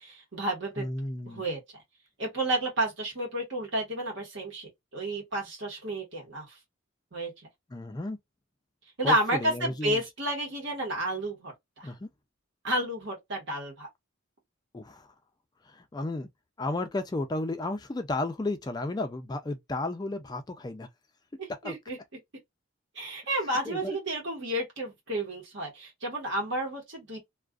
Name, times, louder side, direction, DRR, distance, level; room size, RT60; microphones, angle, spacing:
voice 1, 0.0-0.9 1.2-1.6 2.2-6.6 7.1-7.3 9.0-11.9 12.6-13.9 21.4-22.0 22.9-27.2, right 1 dB, 60° right, 1.1 m, -31 dB
voice 2, 0.8-1.4 7.7-8.2 9.0-10.0 11.8-12.1 14.7-15.1 15.7-16.3 16.6-20.9 21.6-21.7 23.7-24.0, left 2 dB, 20° left, 0.3 m, -33 dB
2.4 x 2.4 x 2.3 m
head